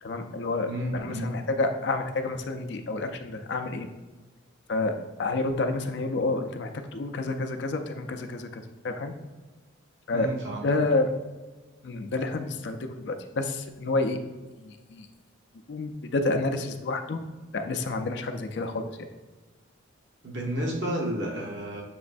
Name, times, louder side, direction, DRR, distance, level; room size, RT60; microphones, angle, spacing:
voice 1, 0.0-3.9 4.7-9.1 10.1-10.3 10.6-11.1 11.8-14.2 14.6-15.1 15.7-17.2 17.5-18.9, left 2 dB, 55° left, 6 dB, 0.4 m, -29 dB
voice 2, 0.7-1.3 10.1-10.7 20.2-21.8, right 1 dB, 60° right, -1 dB, 1.0 m, -31 dB
6.8 x 3.1 x 2.5 m, 1.3 s
head